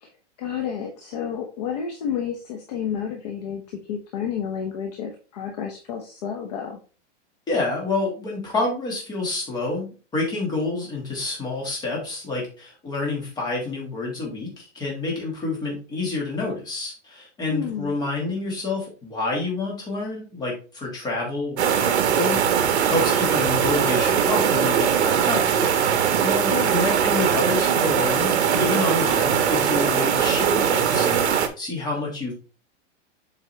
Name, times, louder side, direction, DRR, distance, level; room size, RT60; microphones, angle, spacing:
voice 1, 0.4-6.8 17.5-17.9 26.5-26.9, left 7 dB, 35° left, 3 dB, 0.8 m, -30 dB
voice 2, 7.5-32.3, left 3 dB, 10° left, -2 dB, 1.7 m, -28 dB
sound 1, 21.6-31.5, right 8 dB, 65° right, 1.2 m, -21 dB
7.6 x 4.5 x 3.2 m, 0.36 s
supercardioid pair, 170°, 36 cm